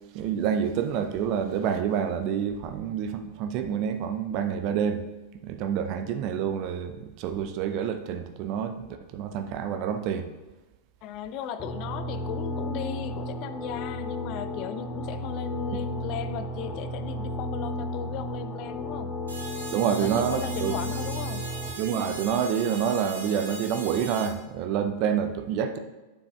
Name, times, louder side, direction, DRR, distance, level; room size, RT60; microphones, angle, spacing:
voice 1, 0.1-5.0 5.4-10.3 19.7-20.7 21.8-25.8, right 8 dB, 40° right, 7 dB, 0.6 m, -28 dB
voice 2, 11.0-19.2 19.9-21.5 25.0-25.5, left 9 dB, 40° left, 12 dB, 0.4 m, -37 dB
sound 1, 11.6-21.7, left 1 dB, 15° left, 0.9 m, -33 dB
sound 2, 19.3-24.3, right 3 dB, 75° right, 1.1 m, -39 dB
9.2 x 7.0 x 2.4 m, 1.1 s
figure-of-eight pair, 90°, 0 cm